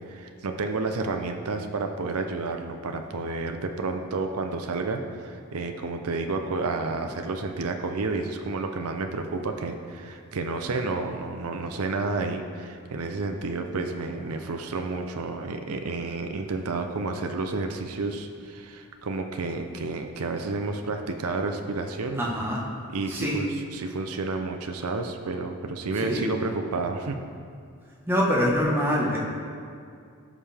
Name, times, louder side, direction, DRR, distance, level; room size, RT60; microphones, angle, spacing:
voice 1, 0.1-22.2 22.9-23.5 23.7-27.2, right 3 dB, 80° right, 5 dB, 0.6 m, -30 dB
voice 2, 22.2-22.6 23.1-23.4 25.9-26.3 28.1-29.2, equal, 10° right, -4 dB, 1.2 m, -25 dB
14.5 x 5.5 x 3.4 m, 2.2 s
head